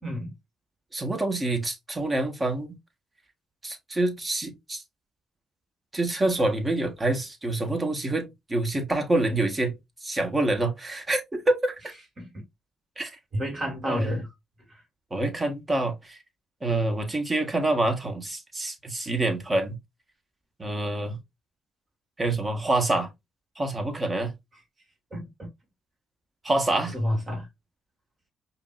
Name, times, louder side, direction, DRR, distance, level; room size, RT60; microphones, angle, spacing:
voice 1, 0.0-0.3 12.2-12.3 13.3-14.3 25.1-25.2 26.9-27.5, equal, 45° right, 2.4 m, -29 dB
voice 2, 0.9-2.8 3.6-4.8 5.9-9.7 10.0-11.7 13.0-13.1 13.8-14.1 15.1-16.2 16.6-19.8 20.6-21.2 22.2-23.1 23.6-24.3 26.4-26.9, right 2 dB, 30° right, 1.5 m, -26 dB
5.1 x 2.8 x 2.5 m
hypercardioid pair, 50°, 0 cm